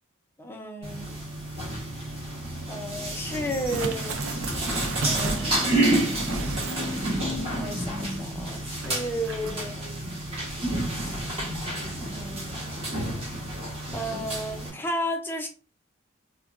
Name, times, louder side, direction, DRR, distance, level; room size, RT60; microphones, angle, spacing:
voice 1, 0.4-1.2 2.7-4.2 5.0-5.8 7.6-9.9 12.0-12.7 13.9-15.5, equal, 10° left, 3 dB, 0.5 m, -33 dB
sound 1, 0.8-14.7, right 1 dB, 30° right, 1.1 m, -30 dB
sound 2, 3.5-7.5 7.8-7.9 8.8-9.5, right 4 dB, 85° right, 0.5 m, -35 dB
3.6 x 2.2 x 2.5 m, 0.34 s
head